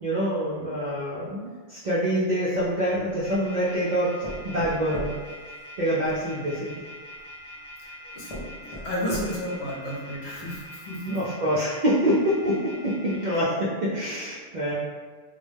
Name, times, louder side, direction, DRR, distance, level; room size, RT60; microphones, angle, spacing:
voice 1, 0.0-5.2 5.8-6.8 11.1-14.7, equal, 60° right, -8 dB, 0.5 m, -26 dB
sound 1, 2.6-3.4 4.2-6.2 7.2-7.3 7.8-7.9 8.3-9.6 10.1-10.2 10.6-10.7, equal, 45° left, 0.5 m, -38 dB
sound 2, 3.2-13.3, left 1 dB, 35° right, 0.9 m, -43 dB
voice 2, 7.8-11.2, equal, 70° left, -4 dB, 0.9 m, -33 dB
2.2 x 2.1 x 3.2 m, 1.5 s
omnidirectional pair, 1.2 m